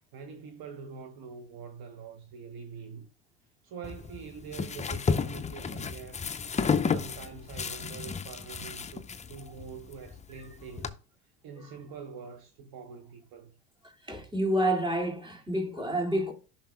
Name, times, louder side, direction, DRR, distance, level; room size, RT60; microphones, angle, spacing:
voice 1, 0.1-3.1 3.6-6.3 6.6-11.0 11.2-13.5, right 5 dB, 45° right, 1.0 m, -45 dB
sound 1, 3.8-10.9, left 5 dB, 15° left, 0.5 m, -32 dB
voice 2, 14.1-16.3, right 1 dB, 10° right, 2.1 m, -28 dB
13.5 x 5.8 x 2.2 m
hypercardioid pair, 80°, 50 cm